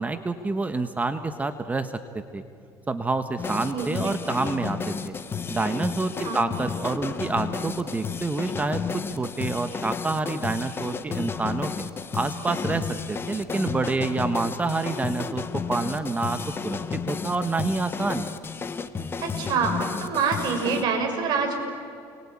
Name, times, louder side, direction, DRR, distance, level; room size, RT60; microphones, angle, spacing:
voice 1, 0.0-1.9 2.3-2.4 2.9-5.1 5.5-11.7 12.1-16.8 17.1-18.3, right 3 dB, 20° right, 9 dB, 1.3 m, -28 dB
sound 1, 3.4-20.8, left 5 dB, 25° left, 1.5 m, -32 dB
voice 2, 3.7-4.2 6.2-6.5 19.2-21.6, right 5 dB, 55° right, 3 dB, 6.6 m, -26 dB
29.5 x 23.0 x 8.8 m, 2.5 s
supercardioid pair, 105°, 8 cm